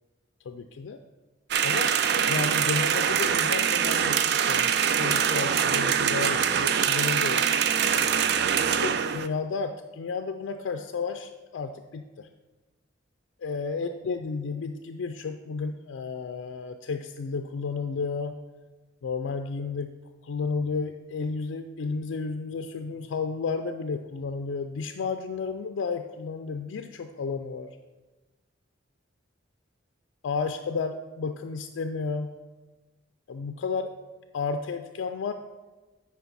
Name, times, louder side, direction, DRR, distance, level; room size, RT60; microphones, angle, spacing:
voice 1, 0.5-1.0 1.6-2.0 2.3-7.4 8.6-12.3 13.4-18.4 19.0-19.9 20.2-27.7 30.2-32.3 33.3-33.9 34.3-35.3, left 4 dB, 85° left, 7 dB, 0.4 m, -32 dB
sound 1, 1.5-9.3, right 8 dB, 60° right, 0.4 m, -24 dB
10.0 x 4.5 x 4.1 m, 1.2 s
head